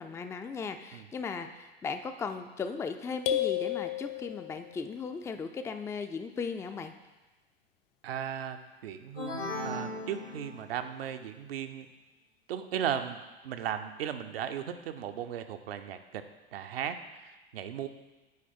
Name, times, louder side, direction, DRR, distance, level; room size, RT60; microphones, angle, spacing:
voice 1, 0.0-6.9, left 5 dB, 10° left, 7 dB, 0.4 m, -37 dB
sound 1, 3.3-4.8, left 12 dB, 60° left, 0.7 m, -31 dB
voice 2, 8.0-11.9 12.5-13.2 13.4-16.2 16.5-17.9, right 9 dB, 70° right, 8 dB, 0.7 m, -36 dB
sound 2, 9.2-11.0, left 1 dB, 85° left, 2.2 m, -38 dB
8.4 x 4.7 x 4.4 m, 1.1 s
figure-of-eight pair, 80°, 31 cm